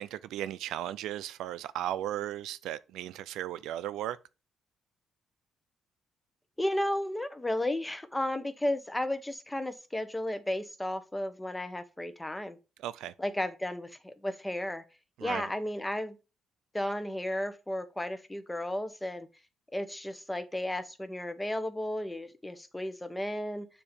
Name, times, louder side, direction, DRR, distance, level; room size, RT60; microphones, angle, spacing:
voice 1, 0.0-4.2 12.8-13.1 15.2-15.5, right 12 dB, 85° right, 0.3 m, -36 dB
voice 2, 6.6-12.6 13.2-14.8 15.2-16.2 16.7-19.3 19.7-23.7, left 1 dB, 10° left, 0.8 m, -33 dB
6.9 x 2.7 x 5.1 m
cardioid pair, 85°, 0 cm